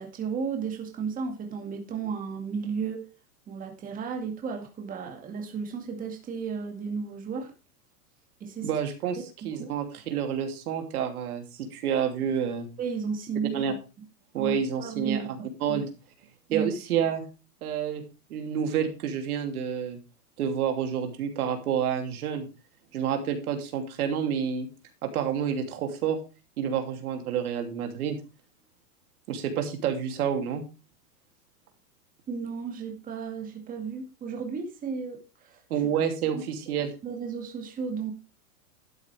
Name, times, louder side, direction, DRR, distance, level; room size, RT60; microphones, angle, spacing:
voice 1, 0.0-3.0 3.5-7.5 8.4-8.7 9.4-9.7 12.8-14.1 14.3-15.8 16.5-16.7 32.3-35.6 36.3-36.8 37.0-38.1, right 5 dB, 20° right, 2.1 m, -34 dB
voice 2, 8.6-9.2 9.4-12.7 13.5-13.7 14.3-15.2 15.6-15.9 16.5-17.2 17.6-18.0 18.3-20.0 20.4-22.5 22.9-24.7 25.0-26.2 26.6-28.2 29.3-30.6 35.7-36.9, right 8 dB, 70° right, 3.0 m, -29 dB
12.0 x 8.9 x 3.4 m
supercardioid pair, 145°, 46 cm